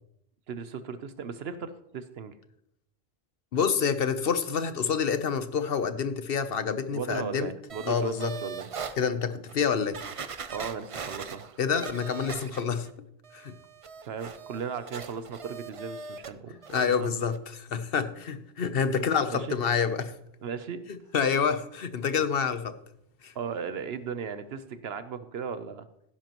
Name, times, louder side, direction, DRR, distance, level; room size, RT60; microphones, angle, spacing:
voice 1, 0.5-2.3 6.9-8.7 10.5-11.5 14.0-16.6 17.0-17.1 19.3-19.6 20.4-20.8 23.3-25.9, right 6 dB, 80° right, 11 dB, 1.0 m, -36 dB
voice 2, 3.5-7.5 7.9-8.3 9.0-10.0 11.6-12.9 13.3-13.5 16.7-20.1 21.1-22.8 23.2-23.3, left 6 dB, 65° left, 11 dB, 1.0 m, -27 dB
sound 1, 7.7-9.0 9.5-9.6 9.9-12.9 13.2-16.3 16.6-17.0 17.3-17.4, right 6 dB, 40° right, 0.5 m, -40 dB
16.0 x 10.0 x 3.0 m, 0.76 s
omnidirectional pair, 1.0 m